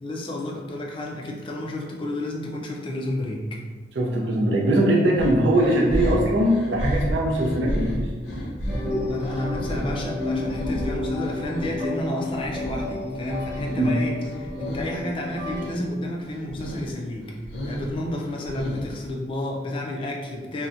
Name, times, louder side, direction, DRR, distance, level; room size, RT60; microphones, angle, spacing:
voice 1, 0.0-3.6 9.1-17.4 17.6-20.7, left 1 dB, 30° left, 0 dB, 0.3 m, -31 dB
voice 2, 4.0-8.1 13.8-13.9, right 1 dB, 70° right, -3 dB, 0.4 m, -21 dB
sound 1, 5.2-11.8 12.2-13.9 14.2-14.9 15.3-15.9 16.2-16.9 17.2-19.1, equal, 85° left, 0.5 m, -31 dB
sound 2, 8.7-15.7, left 1 dB, 5° right, 0.7 m, -31 dB
2.7 x 2.1 x 2.4 m, 1.3 s
head